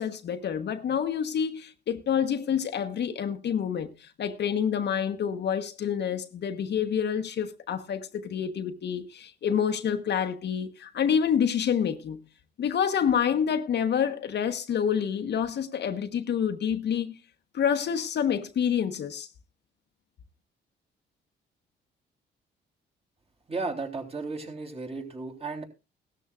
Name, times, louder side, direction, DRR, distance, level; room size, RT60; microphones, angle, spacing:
voice 1, 0.0-12.2 12.6-17.2 17.5-19.3, left 8 dB, 60° left, 1.1 m, -28 dB
voice 2, 23.5-25.6, right 3 dB, 30° right, 3.5 m, -34 dB
17.0 x 13.5 x 2.5 m
cardioid pair, 90°, 20 cm